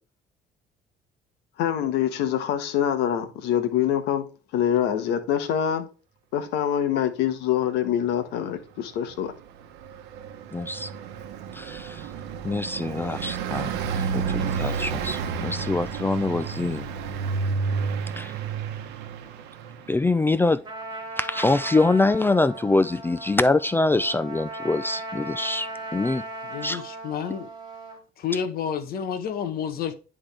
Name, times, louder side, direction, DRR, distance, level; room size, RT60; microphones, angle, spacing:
voice 1, 1.6-4.2 4.5-5.9 6.3-9.3, left 10 dB, 90° left, 1.1 m, -25 dB
Car passing by, 9.1-20.1, right 5 dB, 90° right, 0.9 m, -31 dB
voice 2, 10.5-10.9 11.5-12.1 12.4-13.7 14.0-16.9 18.2-18.3 19.9-20.6 21.2-26.2 26.6-26.8, left 2 dB, 15° left, 0.3 m, -24 dB
Trumpet, 20.6-28.0, right 2 dB, 25° right, 2.1 m, -37 dB
voice 3, 26.4-27.5 28.2-29.9, left 7 dB, 65° left, 1.0 m, -30 dB
10.5 x 3.6 x 3.3 m
cardioid pair, 110°, 17 cm